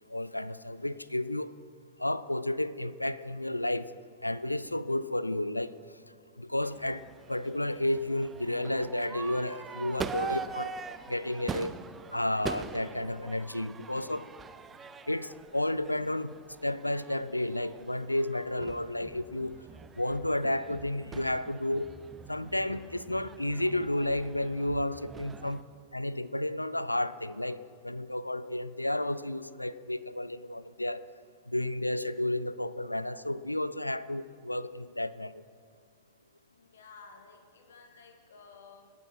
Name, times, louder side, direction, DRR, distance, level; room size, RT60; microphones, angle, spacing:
voice 1, 0.1-1.5 2.0-3.9 4.2-5.7 6.4-7.0 7.3-10.7 11.1-11.7 12.1-14.3 15.1-16.3 16.6-19.6 20.0-21.9 22.3-25.6 25.9-31.0 31.5-35.4, left 1 dB, 85° left, 16 dB, 0.3 m, -32 dB
Crowd / Fireworks, 6.6-25.6, right 5 dB, 20° right, 0.6 m, -43 dB
voice 2, 36.5-38.9, left 4 dB, 65° left, 5 dB, 1.5 m, -54 dB
18.5 x 8.4 x 4.3 m, 2.1 s
figure-of-eight pair, 90°, 0 cm